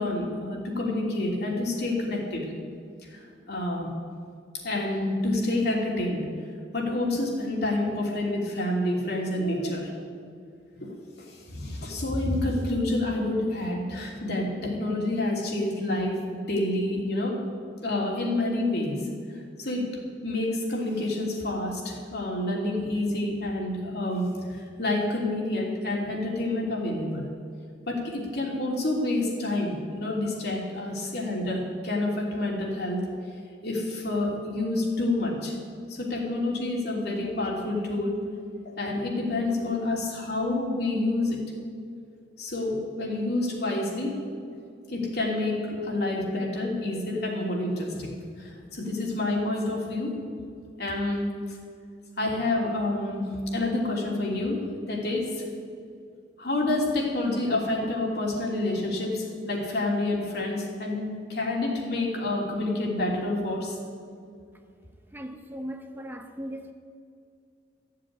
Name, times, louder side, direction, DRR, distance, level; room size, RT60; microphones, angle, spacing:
voice 1, 0.0-2.5 3.1-3.9 4.5-6.2 6.7-9.9 10.8-10.9 11.2-17.4 17.8-19.0 19.6-19.9 20.2-27.3 27.9-33.0 33.6-35.6 35.9-38.2 38.6-41.4 42.4-44.1 44.9-50.1 50.8-51.6 52.2-55.5 56.4-63.8, left 2 dB, 65° left, 3.1 m, -28 dB
voice 2, 65.1-66.7, equal, 10° right, 0.7 m, -38 dB
14.5 x 7.6 x 9.3 m
head